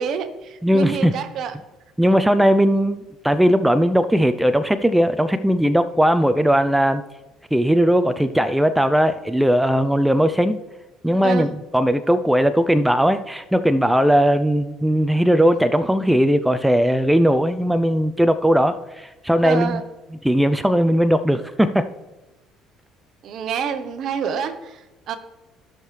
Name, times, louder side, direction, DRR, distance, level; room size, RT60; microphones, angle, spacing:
voice 1, 0.0-1.6 11.2-11.5 19.4-19.8 23.2-25.2, right 7 dB, 60° right, 10 dB, 1.0 m, -27 dB
voice 2, 0.6-1.1 2.0-7.0 7.5-10.6 11.0-19.8 20.2-21.9, equal, 5° right, 11 dB, 0.5 m, -18 dB
14.0 x 6.4 x 3.3 m, 1.1 s
supercardioid pair, 90°, 0 cm